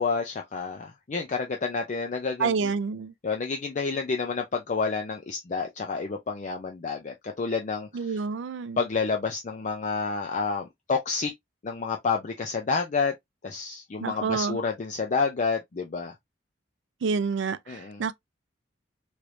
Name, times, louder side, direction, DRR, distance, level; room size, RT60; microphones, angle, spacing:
voice 1, 0.0-2.7 3.2-8.2 8.8-11.3 11.6-13.1 13.4-16.1 17.7-18.0, left 4 dB, 40° left, 0.5 m, -29 dB
voice 2, 2.4-3.1 7.9-8.8 14.0-14.6 17.0-18.1, right 5 dB, 70° right, 0.4 m, -28 dB
3.2 x 3.1 x 2.5 m
head